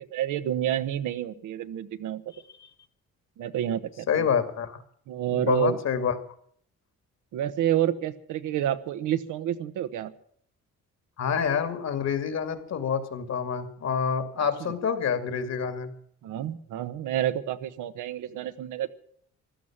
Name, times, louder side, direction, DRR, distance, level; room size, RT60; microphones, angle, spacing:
voice 1, 0.1-2.2 3.4-4.3 5.1-5.8 7.3-10.1 14.6-14.7 16.2-18.9, right 11 dB, 85° right, 10 dB, 1.3 m, -29 dB
voice 2, 4.1-4.8 5.3-6.1 11.2-15.9, left 7 dB, 60° left, 9 dB, 2.5 m, -27 dB
15.5 x 12.5 x 7.4 m, 0.63 s
cardioid pair, 90°, 30 cm